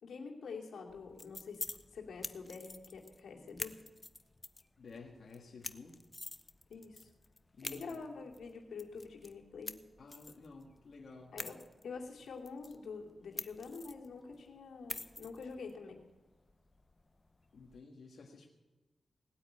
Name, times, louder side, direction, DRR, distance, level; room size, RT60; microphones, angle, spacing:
voice 1, 0.0-1.6 1.9-3.7 6.7-7.1 7.6-9.8 11.3-11.6 11.8-16.0, left 4 dB, 90° left, 0 dB, 2.5 m, -46 dB
sound 1, 0.9-17.8, left 2 dB, 30° left, 0.8 m, -49 dB
voice 2, 4.8-6.0 7.5-8.0 10.0-11.4 17.5-18.5, left 4 dB, 70° left, -1 dB, 1.7 m, -53 dB
18.5 x 8.9 x 8.7 m, 1.2 s
cardioid pair, 70°, 0 cm